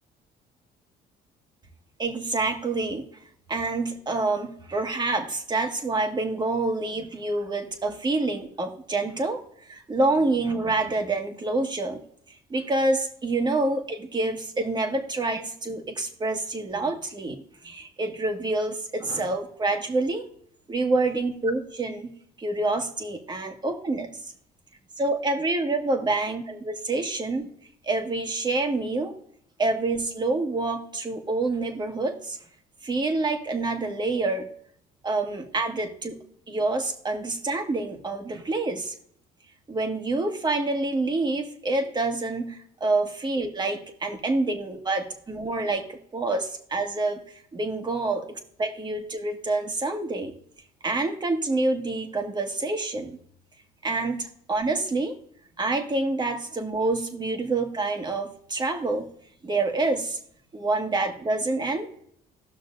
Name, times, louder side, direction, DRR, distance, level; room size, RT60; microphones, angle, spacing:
voice 1, 2.0-3.1 3.5-12.0 12.5-17.4 17.6-20.2 20.7-24.2 25.0-27.5 27.8-29.1 29.6-32.4 32.8-34.5 35.0-36.2 36.5-38.9 39.7-47.2 47.5-50.3 50.8-53.2 53.8-55.1 55.6-59.1 59.4-60.2 60.5-61.9, right 2 dB, 25° right, 4 dB, 1.6 m, -27 dB
17.5 x 6.1 x 2.6 m, 0.66 s
cardioid pair, 110°, 17 cm